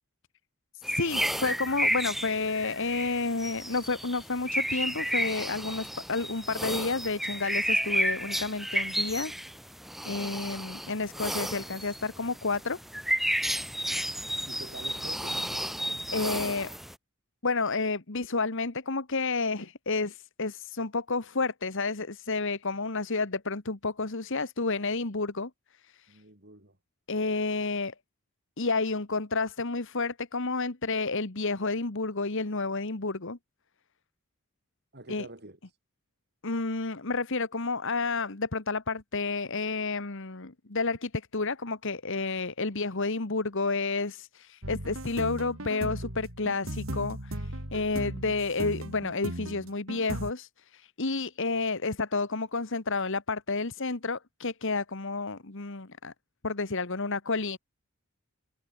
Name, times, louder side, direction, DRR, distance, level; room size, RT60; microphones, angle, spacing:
sound 1, 0.8-16.9, equal, ahead, 0.8 m, -32 dB
voice 1, 0.9-9.3 10.0-12.8 14.1-14.2 16.1-16.8 17.4-26.2 27.1-27.9 28.6-33.4 35.1-35.3 36.4-56.1 56.4-57.6, left 3 dB, 60° left, 1.6 m, -30 dB
voice 2, 11.0-11.3 14.5-15.4 26.1-26.8 34.9-35.6, right 1 dB, 50° right, 7.3 m, -47 dB
sound 2, 44.6-50.3, right 1 dB, 65° right, 3.8 m, -37 dB
head